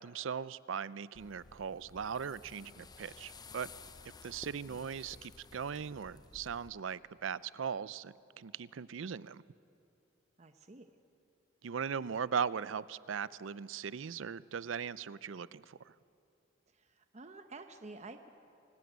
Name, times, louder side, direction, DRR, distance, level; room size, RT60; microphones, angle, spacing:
voice 1, 0.0-3.7 4.2-9.4 11.6-15.9, right 7 dB, 80° right, 19 dB, 0.5 m, -39 dB
sound 1, 1.1-6.7, left 4 dB, 20° left, 0.6 m, -54 dB
voice 2, 10.4-10.9 16.7-18.3, right 3 dB, 35° right, 7 dB, 0.9 m, -51 dB
25.5 x 15.5 x 9.3 m, 2.8 s
head